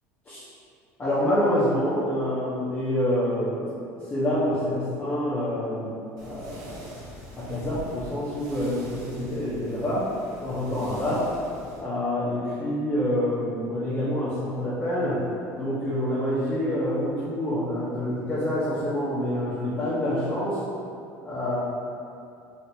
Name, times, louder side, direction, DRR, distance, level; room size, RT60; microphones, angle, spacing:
voice 1, 1.0-3.7 4.1-5.9 6.2-6.8 7.4-10.1 10.4-11.3 11.8-15.3 15.6-20.6 21.2-21.6, left 1 dB, 25° left, -13 dB, 1.0 m, -27 dB
sound 1, 6.2-11.8, equal, 60° right, 0.9 m, -44 dB
3.4 x 2.8 x 2.8 m, 2.5 s
supercardioid pair, 105°, 7 cm